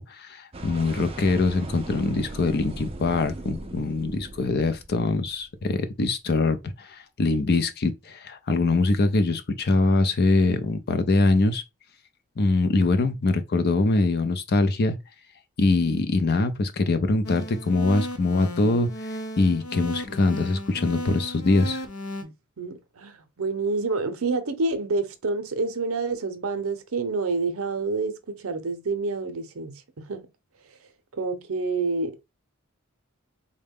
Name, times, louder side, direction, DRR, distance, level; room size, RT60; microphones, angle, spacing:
voice 1, 0.0-11.6 12.4-15.0 15.6-18.9 19.4-21.8, left 3 dB, 45° left, 0.5 m, -23 dB
sound 1, 0.5-5.7, right 2 dB, 25° right, 0.4 m, -39 dB
sound 2, 17.2-22.2, left 1 dB, 80° left, 0.7 m, -35 dB
voice 2, 22.2-30.3 31.1-32.3, right 3 dB, 70° right, 0.6 m, -28 dB
3.7 x 2.2 x 3.4 m
head